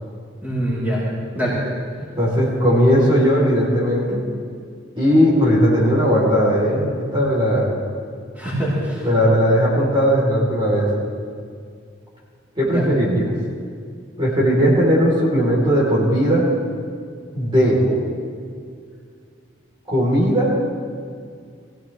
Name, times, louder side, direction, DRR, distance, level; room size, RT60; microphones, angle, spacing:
voice 1, 0.4-1.0 1.3-1.6 8.4-9.1 12.6-12.9 17.8-17.9, equal, 10° right, -9 dB, 4.1 m, -24 dB
voice 2, 2.2-4.2 5.0-7.7 9.0-10.9 12.6-13.3 14.2-16.4 17.3-17.8 19.9-20.5, equal, 25° right, -6 dB, 4.2 m, -17 dB
22.0 x 16.5 x 3.6 m, 2.2 s
head